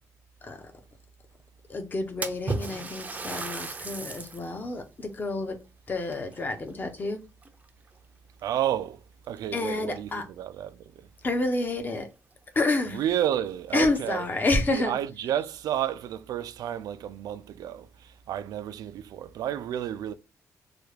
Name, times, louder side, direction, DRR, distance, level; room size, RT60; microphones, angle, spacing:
voice 1, 1.7-5.6 5.9-7.2 9.5-10.2 11.2-12.1 12.5-13.0 13.7-15.0, left 2 dB, 30° left, 0.7 m, -29 dB
Splash splatter, 2.2-4.5 5.0-5.1 6.0-7.1 7.4-7.9 8.7-8.8 9.2-9.3 11.5-11.6 11.9-12.0 12.6-12.7 13.1-13.2 13.9-14.5, right 3 dB, 25° right, 0.5 m, -35 dB
voice 2, 8.4-11.1 12.9-14.3 14.7-20.1, right 11 dB, 90° right, 0.4 m, -31 dB
3.4 x 2.3 x 3.2 m
cardioid pair, 130°, 6 cm